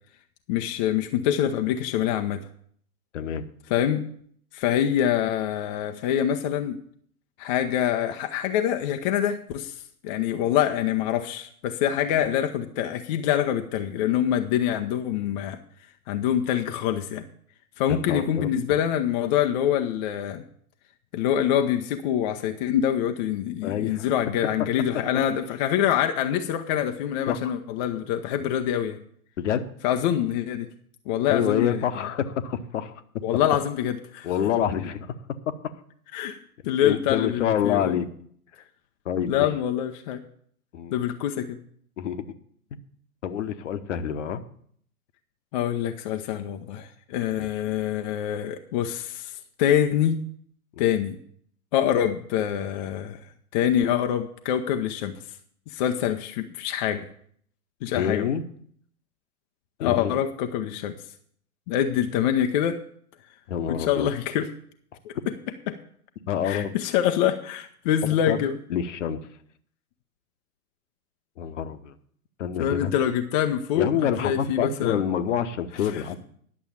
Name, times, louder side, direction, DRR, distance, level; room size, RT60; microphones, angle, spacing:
voice 1, 0.5-2.4 3.7-4.0 4.5-6.8 7.4-9.7 10.0-15.6 16.1-17.2 17.8-20.4 21.1-29.0 29.8-30.7 31.1-31.9 33.2-34.3 36.1-36.4 36.7-38.0 39.3-40.2 40.9-41.6 45.5-50.2 50.8-51.2 51.7-53.2 53.5-55.1 55.7-57.0 57.8-58.3 59.8-61.0 61.7-62.8 63.7-64.5 65.0-65.3 65.7-65.8 66.4-68.6 72.6-75.0 75.8-76.1, left 10 dB, 30° left, 6 dB, 0.6 m, -25 dB
voice 2, 3.1-3.5 17.9-18.5 23.6-24.1 24.9-25.2 27.3-27.5 28.4-28.5 29.4-29.6 31.3-32.9 34.2-35.1 36.8-38.1 39.0-39.5 40.7-41.0 42.0-42.3 43.2-44.4 50.8-50.9 57.9-58.4 59.8-60.2 63.5-64.1 66.3-66.7 68.3-68.4 68.7-69.2 71.4-71.9 72.4-72.9 73.7-76.1, left 9 dB, 50° left, 11 dB, 1.1 m, -27 dB
11.0 x 6.8 x 7.2 m, 0.62 s
figure-of-eight pair, 110°, 45 cm